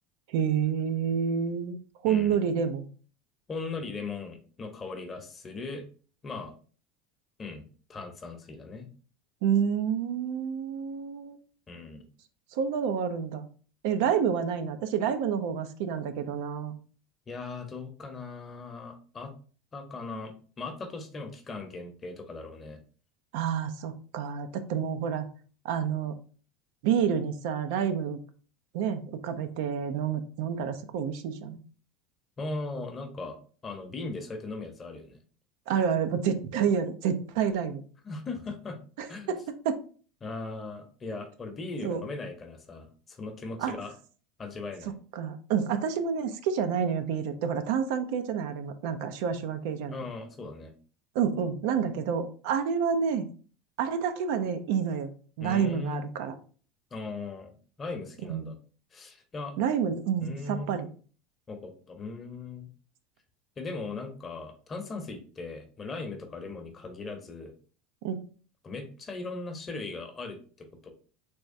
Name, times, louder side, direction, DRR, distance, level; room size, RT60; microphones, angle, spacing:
voice 1, 0.3-1.8 2.0-2.8 9.4-11.4 12.5-13.5 13.8-16.8 23.3-25.3 25.6-26.1 26.8-28.2 28.7-31.6 35.7-37.8 39.0-39.8 41.8-42.0 43.6-43.7 45.2-50.0 51.1-53.3 53.8-55.1 55.4-56.3 58.3-58.5 59.6-60.9 68.0-68.2, right 7 dB, 70° right, 8 dB, 0.5 m, -29 dB
voice 2, 2.1-2.4 3.5-5.8 6.2-6.5 7.4-7.6 7.9-8.9 11.7-12.0 17.3-19.3 19.7-22.8 32.4-35.2 38.0-38.8 39.1-39.4 40.2-43.9 44.4-44.9 49.9-50.7 55.4-56.1 56.9-57.5 57.8-58.5 58.9-59.5 60.2-60.9 61.5-62.7 63.6-67.5 68.6-70.9, left 3 dB, 30° left, 6 dB, 0.8 m, -38 dB
3.4 x 3.1 x 2.6 m, 0.41 s
hypercardioid pair, 95°, 0 cm